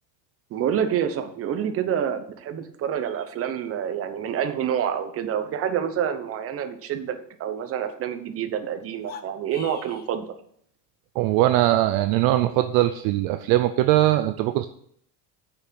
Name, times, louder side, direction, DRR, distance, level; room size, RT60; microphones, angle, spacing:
voice 1, 0.5-10.3, right 9 dB, 30° right, 9 dB, 0.8 m, -27 dB
sound 1, 8.9-10.1, left 8 dB, 25° left, 0.3 m, -42 dB
voice 2, 11.2-14.7, right 15 dB, 55° right, 10 dB, 0.5 m, -21 dB
6.5 x 6.0 x 7.4 m, 0.67 s
cardioid pair, 145°, 46 cm